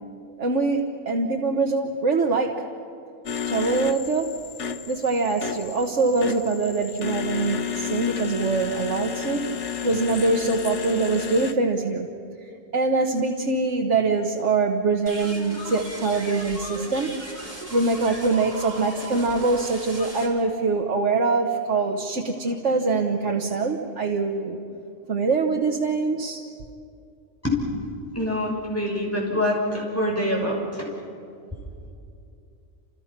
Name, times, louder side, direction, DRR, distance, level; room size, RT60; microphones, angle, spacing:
voice 1, 0.4-2.7 3.5-4.3 4.9-9.5 9.8-12.1 12.7-17.1 17.7-24.6 25.1-26.4, right 3 dB, 70° right, 1 dB, 1.7 m, -24 dB
sound 1, 3.3-11.5, left 8 dB, 70° left, 1.3 m, -32 dB
sound 2, 15.1-20.3, right 1 dB, 35° right, 4.1 m, -37 dB
voice 2, 28.1-30.9, left 1 dB, 10° left, -3 dB, 6.3 m, -25 dB
30.0 x 29.0 x 6.0 m, 2.5 s
omnidirectional pair, 1.3 m